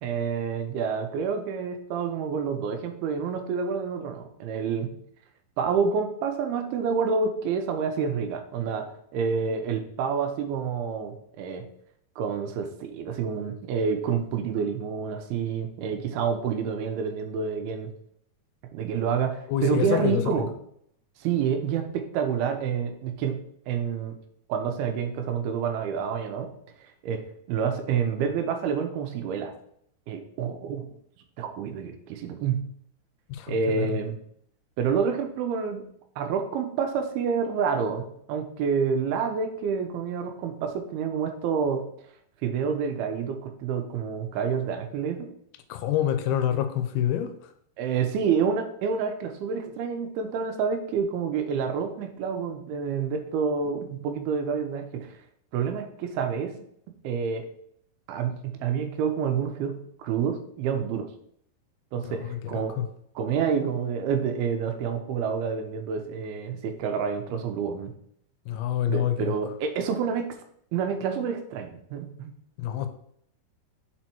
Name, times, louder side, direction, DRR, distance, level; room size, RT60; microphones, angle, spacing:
voice 1, 0.0-4.9 5.6-11.7 12.2-17.9 18.7-20.5 21.2-23.4 23.7-24.1 24.5-26.5 26.8-27.2 27.5-29.5 30.1-30.9 31.4-32.6 33.5-34.2 34.8-35.9 36.2-41.8 42.4-45.3 47.8-55.2 55.5-56.6 57.0-57.5 58.1-61.1 61.9-62.8 63.2-67.9 68.9-70.3 70.7-72.3, right 6 dB, 80° right, 2.5 m, -28 dB
voice 2, 19.5-20.4 33.3-33.9 45.7-47.5 62.1-62.4 62.7-62.9 68.5-69.3 72.6-72.9, left 10 dB, 80° left, 2.5 m, -27 dB
6.1 x 4.5 x 4.3 m
omnidirectional pair, 4.6 m